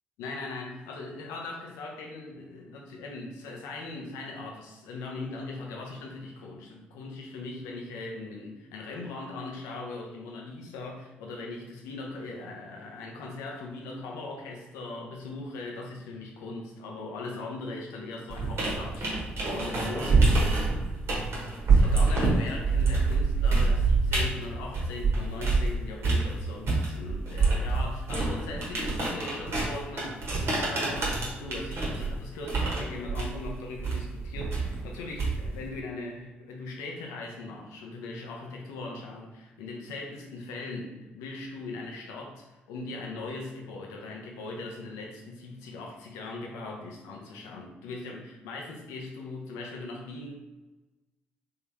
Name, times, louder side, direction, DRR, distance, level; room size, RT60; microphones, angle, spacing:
voice 1, 0.2-20.6 21.7-50.3, left 3 dB, 75° left, 0 dB, 0.6 m, -39 dB
sound 1, 18.3-25.7 26.0-35.6, right 3 dB, 55° right, 1.3 m, -26 dB
3.6 x 3.3 x 2.8 m, 1.1 s
figure-of-eight pair, 40°, 5 cm